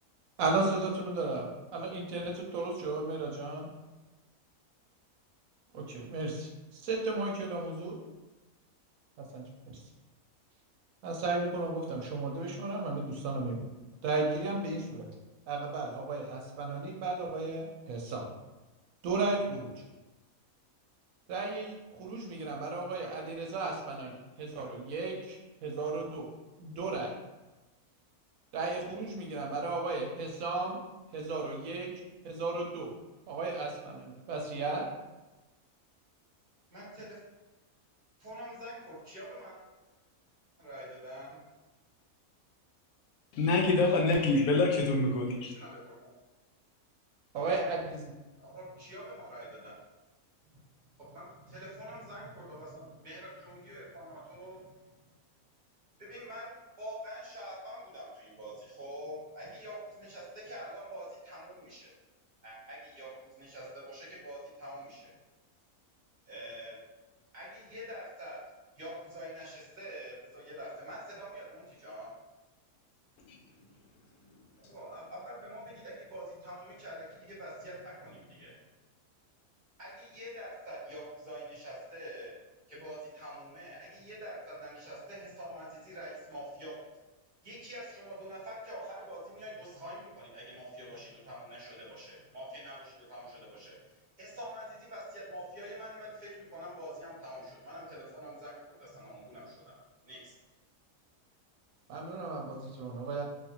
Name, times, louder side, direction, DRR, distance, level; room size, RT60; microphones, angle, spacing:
voice 1, 0.4-3.7 5.7-8.0 9.3-9.8 11.0-13.7 14.0-15.1 15.5-18.3 19.0-19.7 21.3-26.3 26.6-27.1 28.5-30.8 31.1-31.9 32.2-32.9 33.3-34.9 47.3-48.1 101.9-103.2, right 3 dB, 75° right, 0 dB, 0.9 m, -34 dB
voice 2, 36.7-37.2 38.2-39.6 40.6-41.4 44.5-44.6 45.4-46.1 48.4-49.8 51.0-54.6 56.0-61.9 62.4-63.1 63.3-65.1 66.3-66.8 67.3-68.4 68.8-72.1 74.6-78.6 79.8-82.3 82.7-86.7 87.4-93.8 94.2-99.7 100.1-100.3, equal, 35° right, -8 dB, 1.0 m, -45 dB
voice 3, 43.3-45.5 73.3-73.4, left 2 dB, 90° left, 1 dB, 1.1 m, -26 dB
2.7 x 2.4 x 2.8 m, 1.1 s
omnidirectional pair, 1.5 m